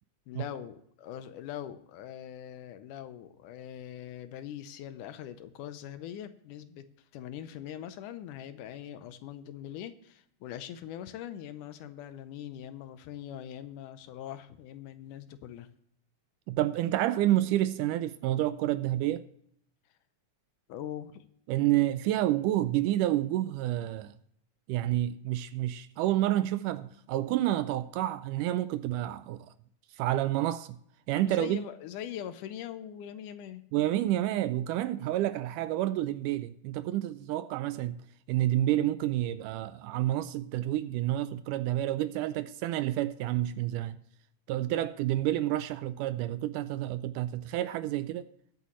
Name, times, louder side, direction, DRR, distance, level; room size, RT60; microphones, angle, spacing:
voice 1, 0.3-15.7 20.7-21.3 31.2-33.6, left 10 dB, 75° left, 2.2 m, -42 dB
voice 2, 16.5-19.3 21.5-24.1 24.7-29.5 30.0-30.8 31.1-31.7 33.7-38.0 38.3-44.0 44.5-48.3, right 14 dB, 80° right, 2.0 m, -29 dB
21.0 x 8.3 x 3.1 m
omnidirectional pair, 3.8 m